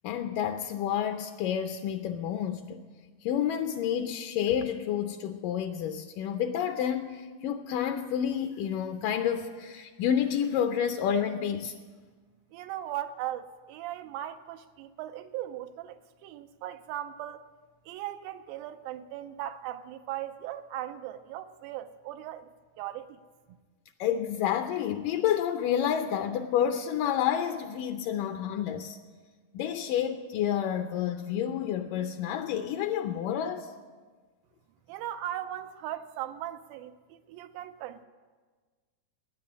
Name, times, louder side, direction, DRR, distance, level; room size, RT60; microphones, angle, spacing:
voice 1, 0.0-2.8 3.2-11.7 24.0-29.0 29.5-33.7, left 9 dB, 75° left, 2.1 m, -29 dB
voice 2, 12.5-17.5 17.9-22.5 22.8-23.2 23.5-23.6 34.9-38.0, right 12 dB, 85° right, 2.5 m, -38 dB
13.0 x 9.7 x 9.8 m
omnidirectional pair, 4.1 m